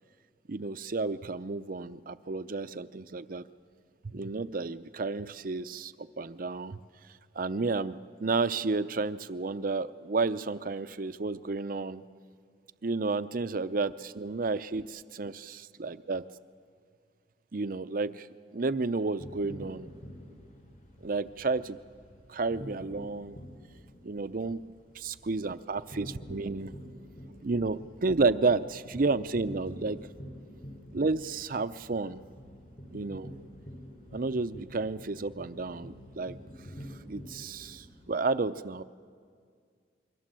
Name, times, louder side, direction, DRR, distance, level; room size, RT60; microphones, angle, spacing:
voice 1, 0.5-3.4 4.0-6.8 7.4-12.0 12.8-16.2 17.5-18.3 18.5-19.9 21.0-21.8 22.3-23.4 24.0-24.6 24.9-26.7 27.4-30.0 30.9-32.2 32.9-33.3 34.1-36.4 37.1-38.8, right 3 dB, 50° right, 13 dB, 0.6 m, -31 dB
sound 1, 19.2-38.1, equal, 50° left, 5.9 m, -48 dB
28.0 x 22.5 x 7.6 m, 2.1 s
head